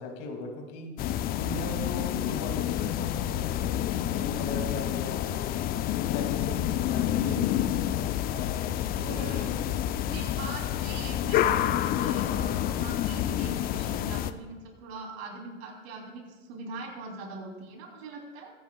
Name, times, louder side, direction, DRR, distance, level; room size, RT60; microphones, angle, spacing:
voice 1, 0.0-5.6 6.1-7.2 8.2-9.5 9.8-9.9, left 2 dB, 50° left, 3 dB, 2.6 m, -39 dB
sound 1, 1.0-14.3, left 11 dB, 25° left, 0.4 m, -28 dB
voice 2, 7.2-7.8 9.1-9.6 10.1-18.5, right 3 dB, 60° right, 1 dB, 3.4 m, -41 dB
21.5 x 9.7 x 2.3 m, 1.3 s
hypercardioid pair, 105°, 35 cm